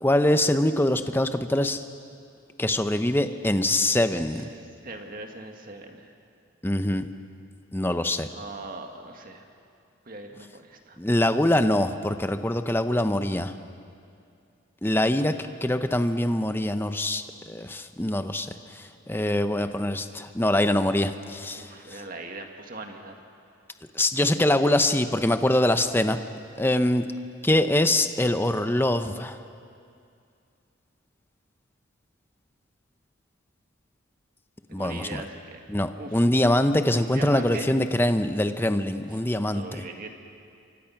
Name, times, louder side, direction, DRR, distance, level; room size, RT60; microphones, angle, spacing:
voice 1, 0.0-1.8 2.6-4.5 6.6-7.1 7.7-8.3 11.0-13.5 14.8-15.3 15.6-21.7 23.9-26.2 26.6-27.0 27.4-29.4 34.7-35.2 35.7-39.8, left 1 dB, 10° left, 9 dB, 0.8 m, -24 dB
voice 2, 4.1-6.1 8.3-9.5 10.1-11.0 14.8-15.5 21.5-23.2 34.7-35.6 36.0-36.2 37.1-37.7 39.0-40.1, right 2 dB, 45° right, 3 dB, 2.0 m, -41 dB
28.0 x 24.5 x 5.9 m, 2.4 s
head